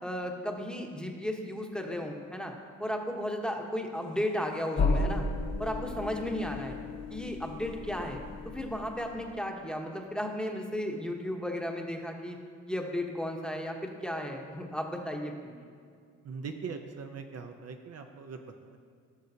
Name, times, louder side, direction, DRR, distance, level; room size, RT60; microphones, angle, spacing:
voice 1, 0.0-2.5 2.8-5.3 5.6-6.7 7.1-8.2 8.4-12.4 12.7-15.6, equal, 5° left, 1 dB, 1.0 m, -34 dB
sound 1, 4.8-9.4, left 3 dB, 55° left, 1.2 m, -33 dB
voice 2, 16.2-18.8, right 5 dB, 55° right, 5 dB, 0.7 m, -41 dB
16.0 x 6.3 x 2.8 m, 2.1 s
cardioid pair, 90°, 30 cm